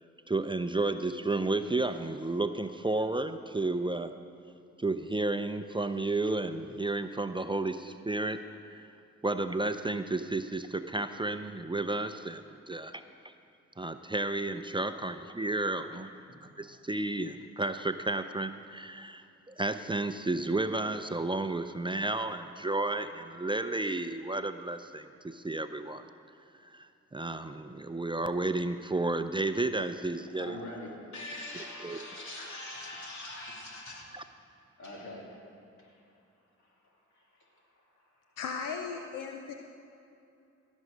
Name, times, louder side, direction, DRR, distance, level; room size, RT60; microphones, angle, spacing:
voice 1, 0.3-4.1 4.8-8.4 8.8-8.9 9.2-13.3 13.8-16.1 16.6-26.0 26.6-30.6 31.8-32.0, right 2 dB, 15° right, 9 dB, 0.5 m, -32 dB
voice 2, 15.8-16.4 30.3-34.1 34.8-38.4, left 1 dB, 65° left, -2 dB, 2.7 m, -45 dB
voice 3, 38.4-39.5, left 5 dB, 90° left, 4 dB, 0.6 m, -36 dB
16.5 x 6.3 x 6.5 m, 2.6 s
supercardioid pair, 50°, 31 cm